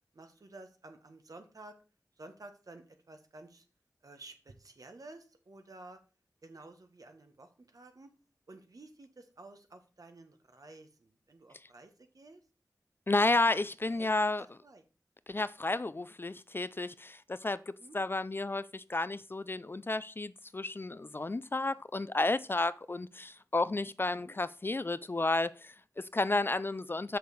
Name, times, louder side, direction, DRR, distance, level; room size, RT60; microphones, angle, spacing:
voice 1, 0.1-1.7 2.2-3.6 4.0-6.0 6.4-8.1 8.5-12.4 13.2-13.5 13.9-14.1 14.4-14.8 17.6-18.0 24.2-24.3, right 2 dB, 60° right, 1.2 m, -52 dB
voice 2, 13.1-14.5 15.3-27.2, left 2 dB, 35° left, 0.4 m, -32 dB
6.7 x 6.3 x 4.0 m
wide cardioid pair, 55°, 7 cm